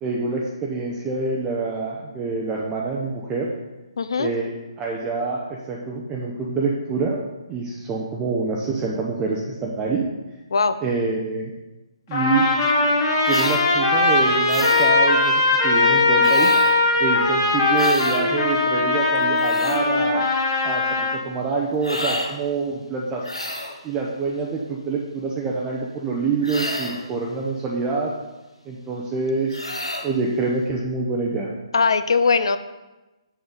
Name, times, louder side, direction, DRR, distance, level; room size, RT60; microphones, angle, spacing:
voice 1, 0.0-3.5 4.2-4.5 4.8-7.2 7.5-10.0 10.8-11.5 12.1-12.5 13.3-16.5 17.0-20.2 20.6-23.3 23.8-28.1 28.7-29.8 30.0-31.5, right 4 dB, 15° right, -2 dB, 0.7 m, -26 dB
voice 2, 4.0-4.3 10.5-10.8 31.7-32.6, left 4 dB, 55° left, 12 dB, 0.4 m, -20 dB
Trumpet, 12.1-21.2, left 3 dB, 35° left, 2.1 m, -19 dB
sound 1, 13.3-13.6 14.5-14.9 16.2-16.8 17.7-18.2 19.2-19.8 21.8-22.3 23.2-23.8 26.4-27.1 29.5-30.1, left 1 dB, 80° left, 1.1 m, -30 dB
7.1 x 6.3 x 3.8 m, 1.1 s
figure-of-eight pair, 135°, 3 cm